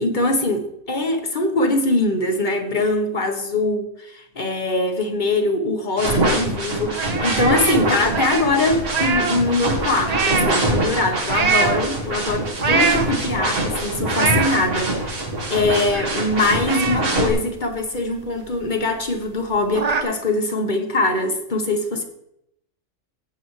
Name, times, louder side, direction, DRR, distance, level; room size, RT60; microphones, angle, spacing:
voice 1, 0.0-22.0, left 2 dB, 35° left, 5 dB, 1.2 m, -22 dB
sound 1, 6.0-17.3, right 1 dB, 60° right, 2.1 m, -24 dB
sound 2, 6.9-9.5 9.8-10.7 11.2-11.8 12.4-13.4 13.8-14.6 15.1-15.2 15.4-16.3 16.7-18.2 18.5-18.6 19.0-19.1 19.4-20.0, right 5 dB, 40° right, 0.6 m, -24 dB
15.5 x 7.1 x 3.2 m, 0.79 s
omnidirectional pair, 1.4 m